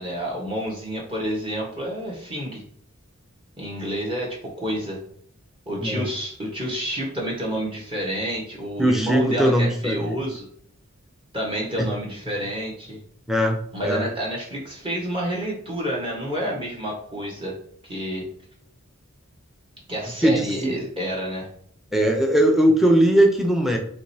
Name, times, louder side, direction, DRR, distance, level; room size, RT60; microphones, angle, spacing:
voice 1, 0.0-2.6 3.6-5.0 5.7-10.5 11.3-13.0 13.7-17.6 17.8-18.3 19.9-21.5, equal, 25° right, -3 dB, 1.2 m, -29 dB
voice 2, 8.8-10.1 13.3-13.6 13.8-14.0 20.2-20.8 21.9-23.8, right 1 dB, ahead, 2 dB, 0.7 m, -19 dB
5.1 x 3.1 x 2.8 m, 0.62 s
head